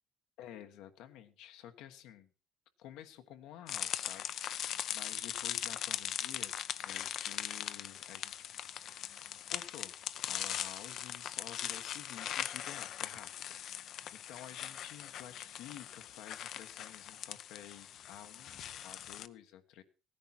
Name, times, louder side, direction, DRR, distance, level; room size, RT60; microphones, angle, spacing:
voice 1, 0.4-2.3 2.8-8.3 8.8-9.1 9.5-9.9 10.3-13.5 14.1-19.8, left 11 dB, 85° left, 7 dB, 1.3 m, -51 dB
sound 1, 3.7-19.3, left 10 dB, 60° left, 0.6 m, -40 dB
16.5 x 10.5 x 4.3 m, 0.34 s
cardioid pair, 125°, 0 cm